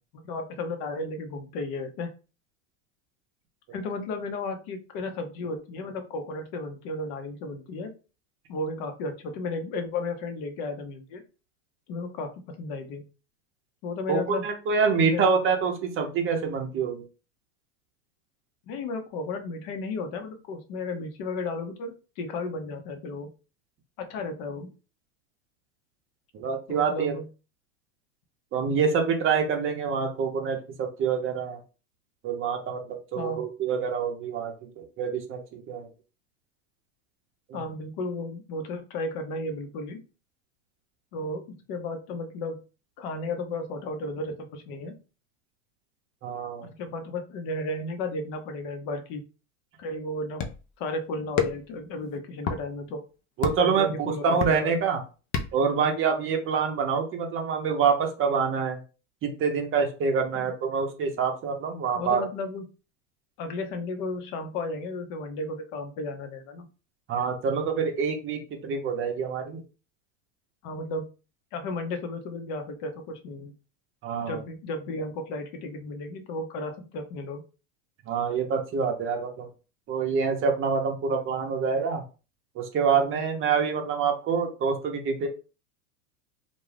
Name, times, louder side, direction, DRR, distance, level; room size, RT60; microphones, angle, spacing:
voice 1, 0.1-2.1 3.7-7.9 8.5-11.2 11.9-13.0 13.8-14.5 15.0-15.3 18.7-23.3 24.0-24.7 26.7-27.3 33.2-33.4 37.5-40.0 41.1-42.6 43.0-45.0 46.6-49.2 49.8-50.4 50.8-53.0 53.6-54.7 60.3-60.5 61.9-62.7 63.4-66.7 70.6-71.1 71.5-73.5 74.2-77.4, left 2 dB, 50° left, 6 dB, 0.8 m, -34 dB
voice 2, 14.1-17.0 26.3-27.1 28.5-31.6 32.2-34.5 35.0-35.9 37.5-37.6 46.2-46.7 53.4-53.9 54.2-55.0 55.5-58.8 59.2-62.2 67.1-69.6 74.0-74.4 78.1-79.5 79.9-82.0 82.6-85.3, right 5 dB, 30° right, 4 dB, 0.6 m, -26 dB
sound 1, 50.4-50.7 51.4-51.8 52.4-52.6 53.4-53.7 54.4-54.8 55.3-55.7, left 6 dB, 30° left, 0.4 m, -28 dB
2.5 x 2.2 x 3.2 m, 0.33 s
supercardioid pair, 120°, 43 cm